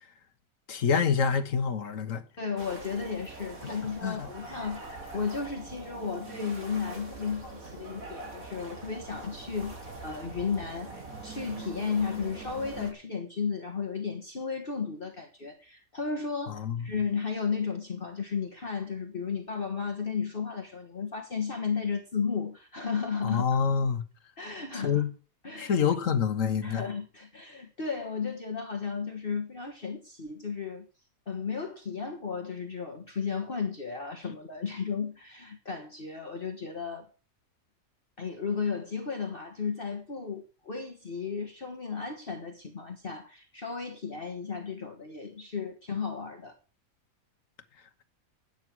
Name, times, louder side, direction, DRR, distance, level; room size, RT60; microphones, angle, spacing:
voice 1, 0.7-2.2 4.0-4.2 16.5-16.8 23.2-24.0 24.8-25.1 25.6-26.8, left 6 dB, 65° left, 1.7 m, -26 dB
voice 2, 2.4-4.8 5.1-23.4 24.4-25.0 25.4-25.8 26.6-30.9 31.3-37.1 38.2-46.5, left 5 dB, 40° left, 1.7 m, -34 dB
sound 1, 2.6-12.9, right 3 dB, 75° right, 3.9 m, -43 dB
11.0 x 9.3 x 6.1 m
omnidirectional pair, 1.5 m